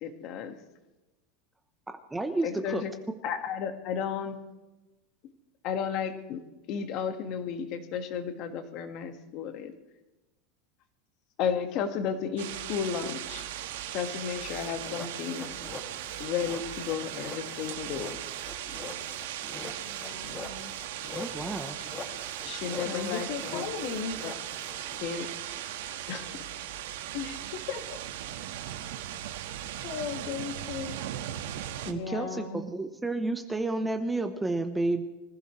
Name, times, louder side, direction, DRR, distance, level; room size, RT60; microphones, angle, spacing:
voice 1, 0.0-0.6 2.4-2.9 3.2-4.4 5.6-6.4 6.7-9.7 11.4-13.5 13.9-15.5 16.2-18.2 21.4-21.6 22.4-23.3 23.5-23.6 25.0-25.3 26.1-26.5, left 7 dB, 40° left, 7 dB, 1.6 m, -33 dB
voice 2, 2.1-2.8 21.1-21.8 31.9-35.0, right 2 dB, 5° right, 7 dB, 0.8 m, -31 dB
sound 1, 12.4-31.9, right 11 dB, 80° right, 1.4 m, -38 dB
sound 2, 14.4-25.0, left 3 dB, 20° left, 2.1 m, -44 dB
voice 3, 19.9-20.7 22.8-24.2 27.1-28.0 29.8-31.0 31.8-32.6, left 6 dB, 55° left, 4 dB, 2.5 m, -36 dB
25.0 x 15.0 x 3.2 m, 1.1 s
supercardioid pair, 170°, 0 cm